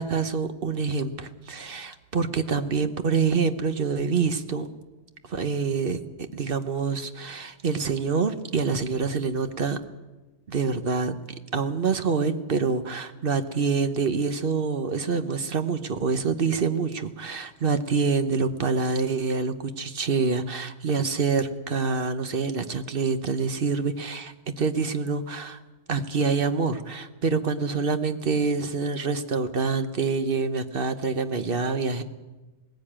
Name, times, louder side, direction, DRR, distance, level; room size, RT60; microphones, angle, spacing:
voice 1, 0.0-4.7 5.3-6.0 6.3-9.8 10.5-11.1 11.5-25.6 25.9-32.0, right 5 dB, 55° right, 10 dB, 1.2 m, -26 dB
19.0 x 15.5 x 8.8 m, 1.2 s
omnidirectional pair, 1.1 m